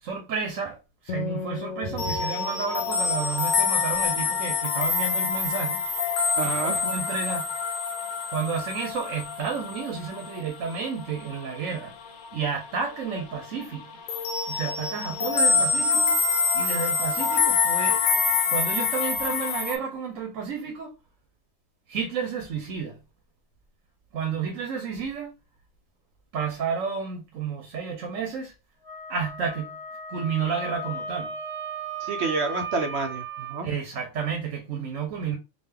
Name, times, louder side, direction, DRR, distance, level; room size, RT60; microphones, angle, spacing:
voice 1, 0.0-5.8 6.4-7.5 8.3-11.9 12.3-13.8 14.5-16.2 16.5-18.0 18.5-20.9 21.9-23.0 24.1-25.4 26.3-28.5 29.1-29.7 30.1-31.3 33.6-35.4, right 6 dB, 85° right, 1.2 m, -31 dB
Acoustic guitar, 1.1-4.8, left 6 dB, 90° left, 1.0 m, -38 dB
sound 1, 2.0-12.4 12.6-13.0 13.3-19.7, left 5 dB, 50° left, 0.6 m, -26 dB
voice 2, 6.4-6.8 15.1-15.7 32.0-33.7, right 3 dB, 65° right, 1.0 m, -29 dB
Wind instrument woodwind instrument, 28.8-33.6, right 2 dB, 15° right, 0.6 m, -36 dB
3.8 x 2.5 x 3.3 m
omnidirectional pair, 1.3 m